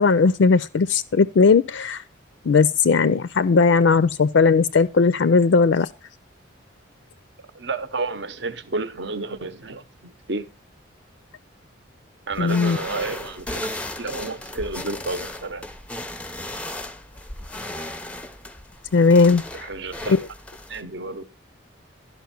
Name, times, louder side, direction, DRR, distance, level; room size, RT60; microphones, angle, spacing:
voice 1, 0.0-2.0 2.4-5.9 12.4-12.8 18.9-19.7 20.1-20.2, left 4 dB, 65° left, 0.4 m, -17 dB
voice 2, 7.5-10.5 12.3-15.7 19.6-20.1 20.7-21.2, right 3 dB, 55° right, 0.8 m, -31 dB
sound 1, 12.3-20.8, left 1 dB, 5° left, 0.5 m, -35 dB
11.5 x 5.4 x 5.8 m
head